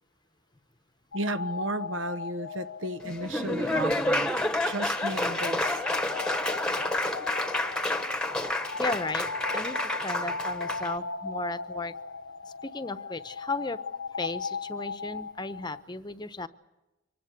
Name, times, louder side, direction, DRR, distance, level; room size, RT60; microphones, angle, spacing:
sound 1, 1.1-15.8, left 4 dB, 85° left, 0.8 m, -38 dB
voice 1, 1.1-4.3 4.6-5.8, right 2 dB, 70° right, 0.9 m, -34 dB
Laughter / Applause, 3.0-10.9, left 1 dB, 5° left, 1.2 m, -29 dB
voice 2, 8.8-9.3 9.5-11.9 12.6-13.8 14.1-16.5, left 3 dB, 20° left, 0.9 m, -35 dB
25.0 x 19.5 x 8.3 m
head